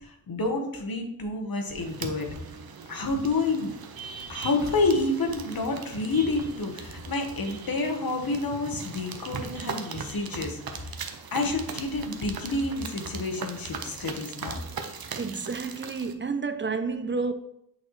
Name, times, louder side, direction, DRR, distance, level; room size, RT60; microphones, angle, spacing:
voice 1, 0.0-2.3 2.9-3.7 4.3-11.0 11.3-14.6, left 3 dB, 75° left, 1.2 m, -29 dB
sound 1, 1.7-16.1, right 5 dB, 85° right, 0.7 m, -39 dB
voice 2, 15.2-17.3, right 4 dB, 35° right, 0.5 m, -30 dB
8.7 x 4.1 x 3.1 m
wide cardioid pair, 85°, 35 cm